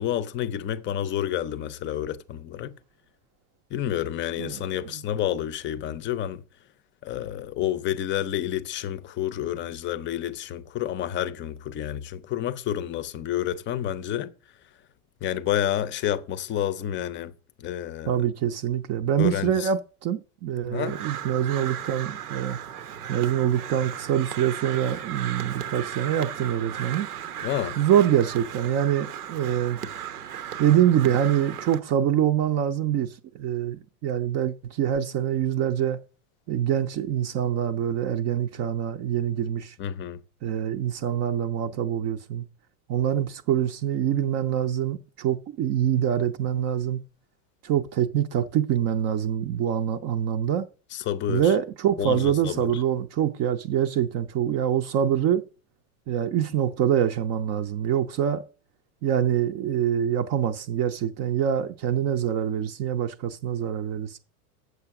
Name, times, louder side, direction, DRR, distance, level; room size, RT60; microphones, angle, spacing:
voice 1, 0.0-2.7 3.7-6.4 7.0-14.3 15.2-17.3 17.6-18.3 19.2-19.7 20.7-21.0 27.4-27.8 39.8-40.2 50.9-51.5 52.0-52.6, left 11 dB, 25° left, 0.6 m, -29 dB
voice 2, 4.4-5.0 18.1-22.6 23.1-27.1 27.8-29.8 30.6-36.0 36.5-39.7 40.4-42.4 42.9-47.0 47.6-50.7 51.3-55.5 56.1-58.4 59.0-64.2, right 10 dB, 35° right, 0.6 m, -25 dB
Crow, 20.7-31.8, right 9 dB, 90° right, 1.0 m, -36 dB
8.0 x 6.9 x 5.8 m
hypercardioid pair, 115°, 44 cm